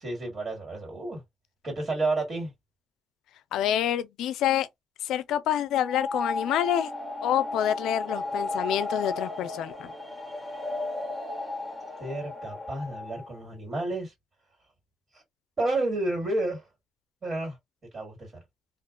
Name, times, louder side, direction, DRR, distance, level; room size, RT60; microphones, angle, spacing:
voice 1, 0.0-1.2 1.6-2.5 12.0-14.1 15.1-15.2 15.6-16.7 17.2-17.6 17.9-18.3, right 2 dB, 40° right, 1.7 m, -30 dB
voice 2, 3.5-4.7 5.0-6.9 7.2-9.9, left 11 dB, 85° left, 0.3 m, -27 dB
sound 1, 5.7-13.4, left 2 dB, 10° left, 0.9 m, -34 dB
2.3 x 2.2 x 2.4 m
cardioid pair, 90°, 0 cm